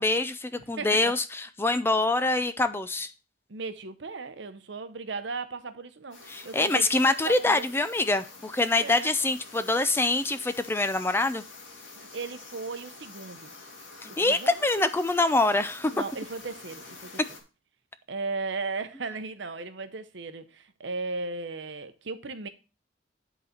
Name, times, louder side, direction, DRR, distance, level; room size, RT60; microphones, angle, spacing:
voice 1, 0.0-3.1 6.3-11.4 14.0-15.9, left 2 dB, 10° left, 0.4 m, -25 dB
voice 2, 0.6-1.0 3.5-7.7 8.8-9.1 12.0-13.5 14.2-14.5 15.9-17.2 18.1-22.5, right 4 dB, 70° right, 0.8 m, -36 dB
sound 1, 6.1-17.4, left 3 dB, 85° left, 2.0 m, -47 dB
10.0 x 4.0 x 4.3 m
head